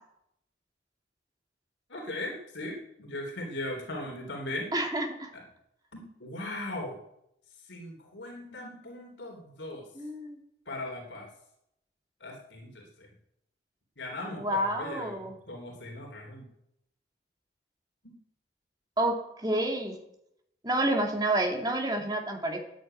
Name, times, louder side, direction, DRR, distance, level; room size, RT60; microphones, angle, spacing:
voice 1, 1.9-4.7 5.3-5.4 5.9-7.0 7.7-9.9 10.7-11.3 12.2-13.1 14.0-16.5 18.0-18.2, left 1 dB, 85° left, 1 dB, 3.7 m, -39 dB
voice 2, 4.7-5.3 10.0-10.4 14.4-15.3 19.0-20.0 20.6-22.6, right 1 dB, 20° right, 2 dB, 2.4 m, -29 dB
14.0 x 9.9 x 9.3 m, 0.79 s
head